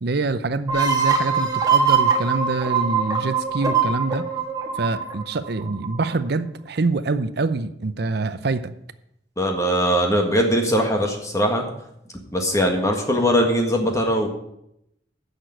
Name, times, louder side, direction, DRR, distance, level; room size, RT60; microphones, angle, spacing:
voice 1, 0.0-4.2 4.8-8.7, right 3 dB, 55° right, 0.6 m, -25 dB
sound 1, 0.7-6.1, right 6 dB, 20° right, 1.4 m, -22 dB
voice 2, 9.4-11.6 12.3-14.3, equal, 15° left, 1.7 m, -20 dB
10.0 x 6.7 x 8.0 m
head